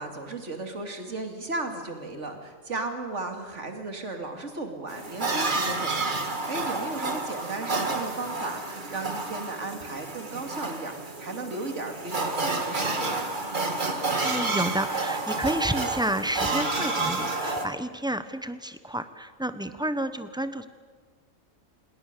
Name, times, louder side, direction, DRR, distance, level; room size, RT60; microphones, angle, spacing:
voice 1, 0.0-13.3, right 2 dB, 65° right, 5 dB, 2.9 m, -35 dB
sound 1, 4.9-17.7, right 3 dB, 40° right, 1.9 m, -30 dB
voice 2, 14.2-20.7, right 1 dB, 5° right, 11 dB, 0.9 m, -30 dB
27.0 x 21.0 x 6.9 m, 1.5 s
omnidirectional pair, 1.4 m